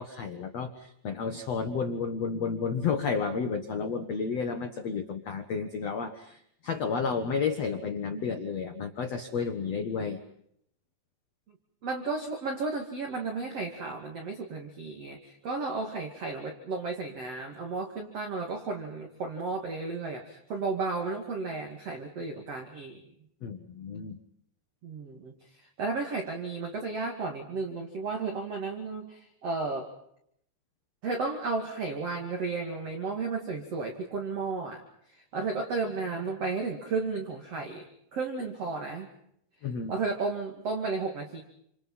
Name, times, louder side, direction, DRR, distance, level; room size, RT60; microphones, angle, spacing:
voice 1, 0.0-10.2 23.4-24.2 39.6-39.9, left 5 dB, 75° left, 6 dB, 1.5 m, -31 dB
voice 2, 11.8-23.0 24.8-25.3 25.8-29.9 31.0-34.8 35.1-39.1 39.9-41.4, right 3 dB, 40° right, 2 dB, 2.8 m, -33 dB
29.0 x 27.0 x 5.6 m, 0.71 s
omnidirectional pair, 5.2 m